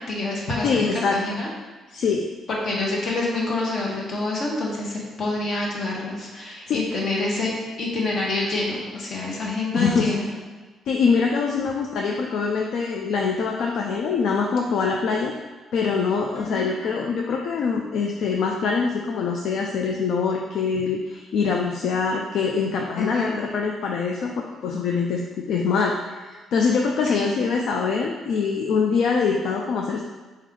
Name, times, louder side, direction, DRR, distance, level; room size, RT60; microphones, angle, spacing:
voice 1, 0.1-1.5 2.5-10.4 16.3-16.7 23.0-23.3 27.0-27.4, left 2 dB, 60° left, -3 dB, 1.3 m, -27 dB
voice 2, 0.6-1.2 1.9-2.3 6.7-6.8 9.7-10.1 10.9-15.3 15.7-24.3 24.6-25.2 25.5-30.0, left 5 dB, 75° left, 1 dB, 0.4 m, -24 dB
4.2 x 3.2 x 3.8 m, 1.3 s
cardioid pair, 90°, 0 cm